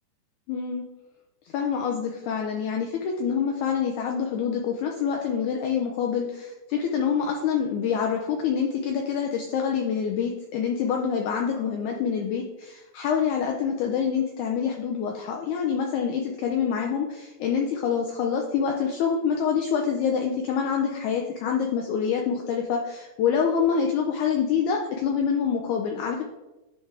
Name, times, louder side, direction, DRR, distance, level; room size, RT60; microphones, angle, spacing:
voice 1, 0.5-0.8 1.5-26.2, left 7 dB, 80° left, 1 dB, 1.7 m, -26 dB
10.5 x 3.6 x 3.3 m, 1.0 s
omnidirectional pair, 4.1 m